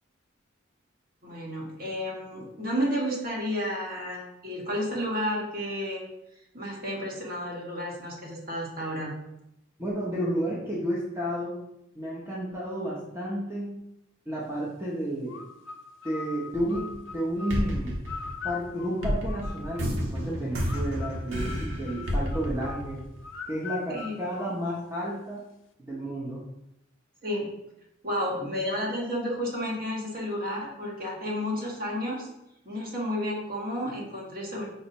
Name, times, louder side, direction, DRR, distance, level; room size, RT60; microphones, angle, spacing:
voice 1, 1.2-6.0 6.5-9.1 23.9-24.2 27.2-27.5 28.0-32.3 32.6-34.7, equal, 45° right, -3 dB, 1.2 m, -31 dB
voice 2, 9.8-11.6 12.0-13.7 14.3-15.4 16.0-17.9 18.4-23.0 23.5-25.4 25.8-26.4, equal, 10° right, -5 dB, 0.5 m, -31 dB
sound 1, 15.3-20.0 20.7-25.1, left 5 dB, 85° left, 0.5 m, -42 dB
sound 2, 16.5-17.1 17.5-23.4, equal, 75° right, 0.9 m, -31 dB
5.2 x 2.1 x 4.1 m, 0.85 s
head